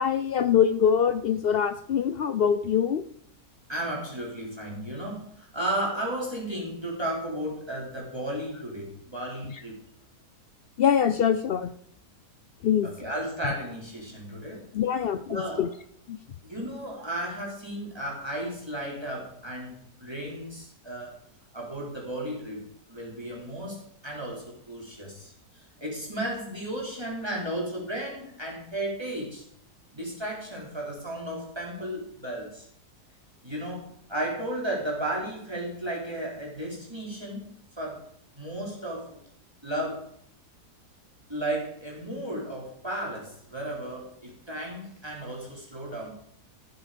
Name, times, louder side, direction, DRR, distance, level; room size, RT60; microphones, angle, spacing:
voice 1, 0.0-3.0 10.8-11.7 12.6-12.9 14.7-15.7 16.1-16.2, left 8 dB, 80° left, 11 dB, 0.5 m, -24 dB
voice 2, 3.7-9.8 12.8-14.6 15.3-15.7 16.4-21.2 21.5-25.3 25.8-29.4 29.9-32.7 33.4-37.5 37.8-38.0 38.4-39.2 39.6-40.1 41.3-46.1, right 1 dB, 15° right, -2 dB, 3.5 m, -34 dB
13.5 x 8.3 x 5.1 m, 0.66 s
omnidirectional pair, 1.7 m